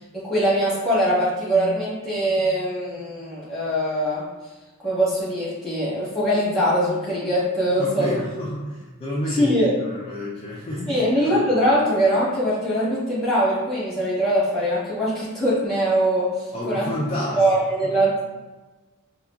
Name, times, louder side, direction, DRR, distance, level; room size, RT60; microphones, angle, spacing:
voice 1, 0.1-4.2 4.8-8.1 9.3-9.7 10.7-16.9 17.4-18.2, equal, ahead, -10 dB, 1.2 m, -22 dB
voice 2, 7.8-11.4 16.5-17.4 17.8-17.9, left 1 dB, 25° left, -7 dB, 0.4 m, -30 dB
3.6 x 2.3 x 2.3 m, 1.2 s
head